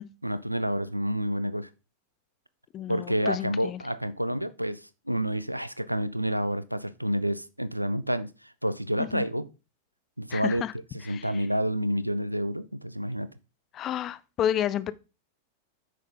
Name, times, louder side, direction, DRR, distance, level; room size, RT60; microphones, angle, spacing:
voice 1, 0.2-1.7 2.9-4.8 5.1-8.3 8.6-9.5 10.2-10.6 11.1-13.3, equal, 90° right, 0.5 m, -29 dB
voice 2, 2.7-3.8 9.0-9.2 10.3-10.7 11.0-11.4 13.7-14.9, left 10 dB, 30° left, 0.6 m, -31 dB
9.1 x 6.4 x 3.8 m
figure-of-eight pair, 90°, 0 cm